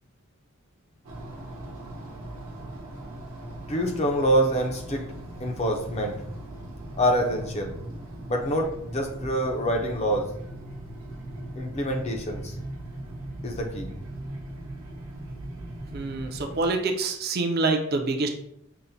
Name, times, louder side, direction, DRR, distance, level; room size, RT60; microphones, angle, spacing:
sound 1, 1.0-16.7, right 1 dB, 80° right, 0.9 m, -39 dB
voice 1, 3.7-5.1 5.4-6.2 7.0-7.7 8.3-10.3 11.6-12.5 13.4-13.9, equal, 30° left, 2 dB, 0.5 m, -26 dB
voice 2, 15.9-18.3, right 3 dB, 45° right, 5 dB, 0.4 m, -26 dB
5.6 x 2.1 x 2.6 m, 0.72 s
head